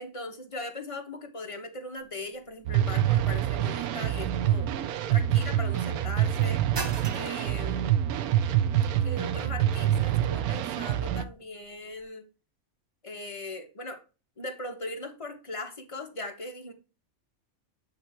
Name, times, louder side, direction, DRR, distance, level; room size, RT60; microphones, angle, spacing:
voice 1, 0.0-4.7 5.1-6.6 7.1-8.0 9.0-12.3 13.0-14.0 14.4-16.7, left 2 dB, 25° left, 1.0 m, -39 dB
sound 1, 2.0-12.1, right 3 dB, 35° right, 0.4 m, -46 dB
sound 2, 2.7-11.2, right 11 dB, 80° right, 1.1 m, -26 dB
8.8 x 3.2 x 4.4 m
omnidirectional pair, 1.5 m